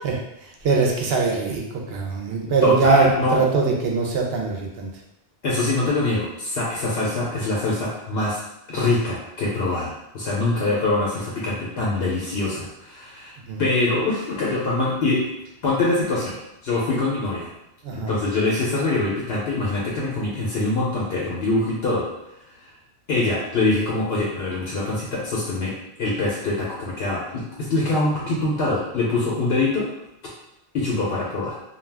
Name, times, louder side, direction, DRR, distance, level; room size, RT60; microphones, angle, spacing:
voice 1, 0.6-4.9 13.5-13.7 17.8-18.1, right 4 dB, 75° right, 0 dB, 0.8 m, -21 dB
voice 2, 2.4-3.4 5.4-8.4 8.7-13.3 13.6-15.2 15.6-16.3 16.6-17.5 17.9-22.1 23.1-25.7 26.0-29.9 30.7-31.5, left 2 dB, 75° left, -5 dB, 0.9 m, -24 dB
2.3 x 2.2 x 3.3 m, 0.84 s
omnidirectional pair, 1.1 m